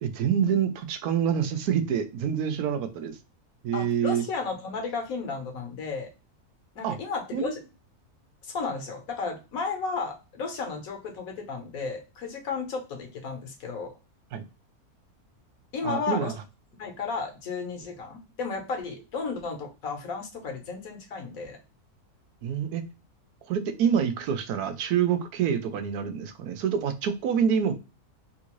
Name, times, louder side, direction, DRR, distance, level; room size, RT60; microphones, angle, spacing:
voice 1, 0.0-3.2 3.6-4.2 6.8-7.0 7.3-7.6 14.3-14.4 15.8-16.3 22.4-22.8 23.5-27.7, right 8 dB, 85° right, 9 dB, 1.1 m, -26 dB
voice 2, 3.7-6.1 6.7-7.6 8.4-13.9 15.7-16.3 16.8-21.6, left 4 dB, 65° left, 3 dB, 1.3 m, -33 dB
3.6 x 2.5 x 2.9 m, 0.28 s
omnidirectional pair, 1.6 m